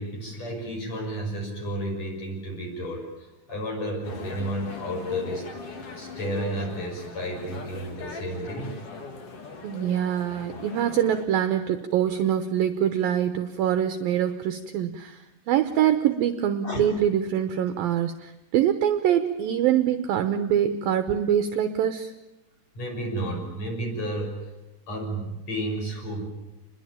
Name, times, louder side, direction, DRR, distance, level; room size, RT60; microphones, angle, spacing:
voice 1, 0.0-5.4 6.0-8.8 16.6-16.8 22.7-24.3 24.9-26.3, right 1 dB, 35° left, 1 dB, 6.8 m, -32 dB
sound 1, 4.0-11.3, left 4 dB, 50° left, 1.8 m, -40 dB
voice 2, 9.6-15.2 15.5-22.1, right 10 dB, 75° right, 9 dB, 2.2 m, -24 dB
28.5 x 21.0 x 8.9 m, 0.99 s
omnidirectional pair, 5.5 m